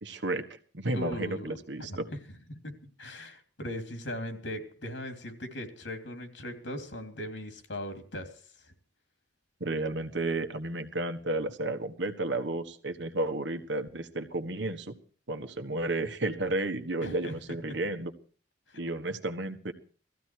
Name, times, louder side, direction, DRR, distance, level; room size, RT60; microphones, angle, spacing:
voice 1, 0.0-2.1 9.6-15.0 15.3-18.1 18.8-19.7, right 2 dB, 85° right, 7 dB, 1.6 m, -32 dB
voice 2, 0.9-2.2 2.5-2.7 3.0-8.3 8.6-8.7 17.0-17.4 17.7-17.8 18.7-18.8, equal, 85° left, 7 dB, 3.3 m, -39 dB
17.5 x 14.5 x 4.7 m, 0.41 s
head